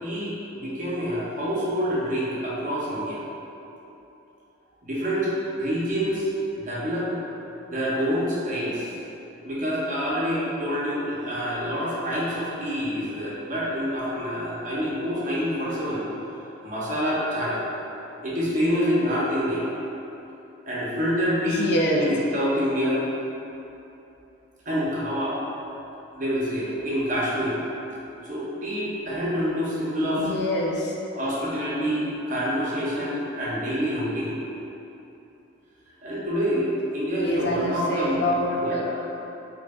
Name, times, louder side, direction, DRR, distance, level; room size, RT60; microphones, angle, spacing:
voice 1, 0.0-3.2 4.8-5.3 5.6-6.3 6.6-7.2 7.7-8.9 9.4-16.1 16.6-17.6 18.2-19.7 20.7-21.7 22.0-23.1 24.7-25.4 26.1-27.6 28.3-30.3 31.1-34.4 36.0-38.2 38.6-38.9, equal, 40° right, -7 dB, 0.7 m, -27 dB
voice 2, 21.5-22.0 30.2-30.9 37.2-38.9, left 1 dB, 55° left, -2 dB, 0.4 m, -26 dB
4.5 x 2.7 x 2.3 m, 3.0 s
head